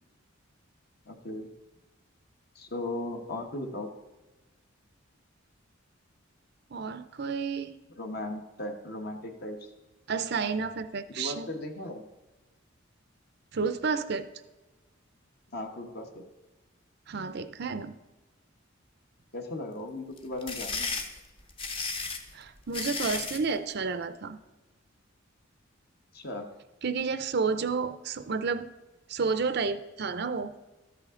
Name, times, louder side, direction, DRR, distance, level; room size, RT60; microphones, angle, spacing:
voice 1, 1.1-1.5 2.5-3.9 7.9-9.6 11.1-12.1 15.5-16.3 19.3-21.0 26.1-26.5, left 1 dB, 50° left, 4 dB, 1.2 m, -37 dB
voice 2, 6.7-7.7 10.1-11.5 13.5-14.3 17.1-17.9 22.3-24.4 26.8-28.7 29.1-30.5, right 5 dB, 50° right, 11 dB, 0.5 m, -31 dB
sound 1, 20.2-23.5, left 4 dB, 25° left, 0.9 m, -34 dB
13.0 x 8.4 x 3.7 m, 1.1 s
head